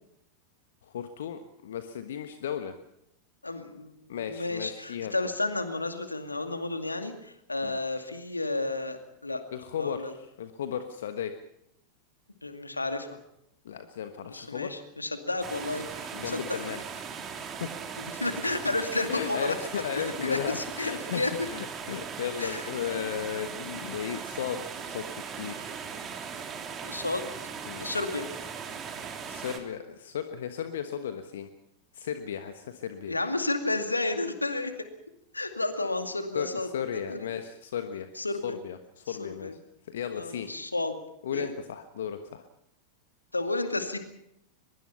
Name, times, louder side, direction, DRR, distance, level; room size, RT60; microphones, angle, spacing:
voice 1, 0.8-2.8 4.1-5.1 7.6-7.8 9.5-11.4 13.6-14.7 16.1-16.8 17.6-17.8 19.1-25.8 27.6-27.9 29.3-31.5 31.9-33.2 36.3-38.1 38.4-39.5 39.8-40.5 41.2-42.4, left 8 dB, 60° left, 8 dB, 1.3 m, -35 dB
voice 2, 3.4-9.4 9.8-10.1 12.4-13.2 14.2-16.6 18.0-19.5 20.0-21.5 22.4-22.7 22.9-23.1 26.8-27.3 27.8-28.3 33.1-34.7 35.3-37.3 38.2-38.6 39.1-39.5 40.1-41.0 41.3-41.5 43.3-44.0, left 2 dB, 80° left, 7 dB, 2.2 m, -32 dB
sound 1, 15.4-29.6, right 6 dB, 25° right, 3.1 m, -39 dB
23.0 x 22.0 x 5.8 m, 0.76 s
figure-of-eight pair, 90°, 0 cm